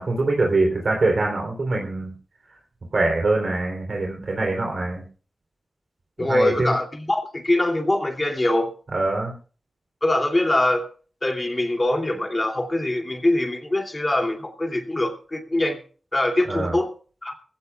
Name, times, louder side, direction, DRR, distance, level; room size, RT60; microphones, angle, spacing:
voice 1, 0.0-2.1 2.9-5.0 6.3-6.7 8.9-9.3 16.5-16.7, right 2 dB, 60° right, 0 dB, 3.6 m, -23 dB
voice 2, 6.2-8.7 10.0-10.9 11.2-15.8 16.1-16.9 17.2-17.3, left 1 dB, 25° left, 3 dB, 2.8 m, -23 dB
21.0 x 16.0 x 2.4 m, 0.39 s
wide cardioid pair, 75°, 0 cm